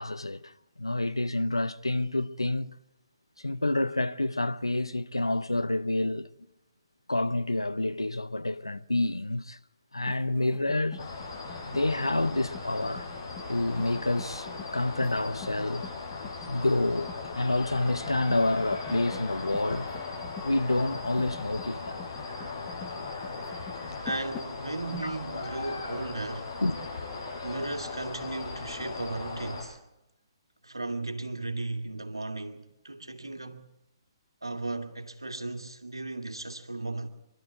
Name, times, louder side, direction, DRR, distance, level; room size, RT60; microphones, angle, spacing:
voice 1, 0.0-2.8 3.4-6.3 7.1-9.6 9.9-11.0 11.6-13.1 13.5-15.9 16.5-19.9 20.4-22.0 25.0-25.2 26.6-26.8, left 2 dB, 85° left, 0.8 m, -28 dB
sound 1, 10.0-25.0, left 7 dB, 20° left, 1.2 m, -47 dB
sound 2, 11.0-29.6, left 4 dB, 65° left, 7.6 m, -38 dB
voice 2, 24.0-26.5 27.4-29.8 30.6-33.7 34.4-37.1, right 2 dB, 85° right, 2.0 m, -36 dB
24.0 x 13.0 x 8.3 m
figure-of-eight pair, 130°, 3 cm